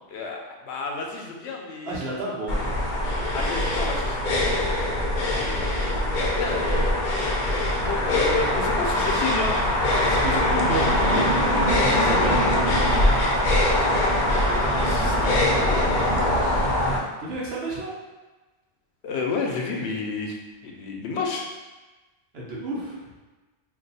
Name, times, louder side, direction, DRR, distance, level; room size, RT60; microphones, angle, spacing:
voice 1, 0.1-2.0 3.3-4.7 6.4-6.6 7.9-9.5 14.8-15.9 19.0-20.4 20.6-21.5, left 4 dB, 90° left, 0 dB, 0.9 m, -30 dB
voice 2, 1.8-2.7 5.3-5.7 9.1-9.5 10.0-10.9 11.4-11.5 11.9-12.6 17.2-18.0 22.3-23.1, right 2 dB, 75° right, -5 dB, 1.1 m, -32 dB
sound 1, 2.5-17.0, left 1 dB, 55° left, 0.7 m, -22 dB
2.6 x 2.3 x 3.9 m, 1.2 s
omnidirectional pair, 1.1 m